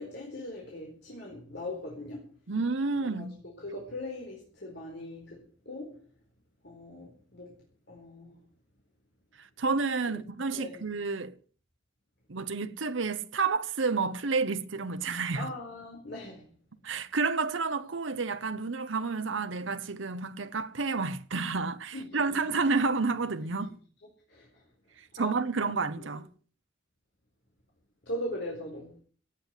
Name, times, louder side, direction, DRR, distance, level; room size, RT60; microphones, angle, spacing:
voice 1, 0.0-2.3 3.0-6.0 6.6-8.5 10.1-10.2 10.5-10.9 15.3-16.5 21.9-22.4 23.4-23.7 24.3-24.6 25.2-25.4 25.8-26.1 28.0-29.0, left 1 dB, 60° left, 4.5 m, -41 dB
voice 2, 2.5-3.4 9.4-11.4 12.3-15.5 16.8-23.7 25.0-26.3, right 4 dB, 80° right, 0.9 m, -30 dB
17.0 x 8.3 x 8.2 m
head